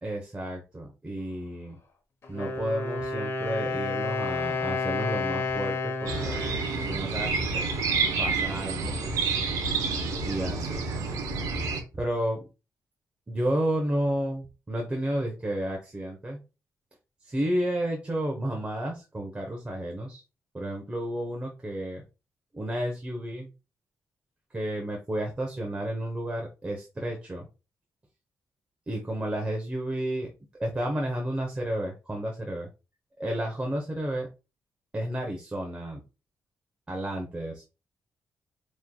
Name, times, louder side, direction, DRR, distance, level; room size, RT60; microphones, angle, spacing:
voice 1, 0.0-1.7 2.3-6.4 6.9-7.6 8.2-9.0 10.2-10.9 11.9-12.5 13.3-16.4 17.2-20.2 20.5-22.0 22.5-23.5 24.5-27.4 28.9-30.3 30.6-32.7 33.2-34.3 34.9-36.0 36.9-37.7, right 1 dB, 20° right, 0 dB, 0.9 m, -31 dB
Wind instrument woodwind instrument, 2.2-8.0, left 3 dB, 45° left, 1.0 m, -31 dB
sound 1, 6.1-11.8, right 4 dB, 85° right, 0.9 m, -29 dB
5.2 x 3.1 x 2.3 m, 0.30 s
cardioid pair, 110°, 6 cm